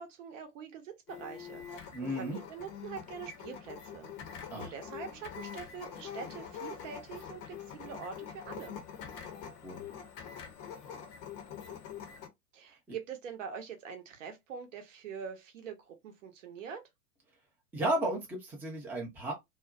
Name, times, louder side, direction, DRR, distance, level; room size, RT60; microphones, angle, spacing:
voice 1, 0.0-4.1 4.5-8.8 12.5-16.8, right 6 dB, 55° right, 0.8 m, -44 dB
sound 1, 1.1-12.3, left 7 dB, 40° left, 0.7 m, -45 dB
voice 2, 1.9-2.4 4.5-4.7 9.6-9.8 17.7-19.3, right 1 dB, 5° right, 0.5 m, -33 dB
2.5 x 2.1 x 2.4 m
figure-of-eight pair, 95°, 45 cm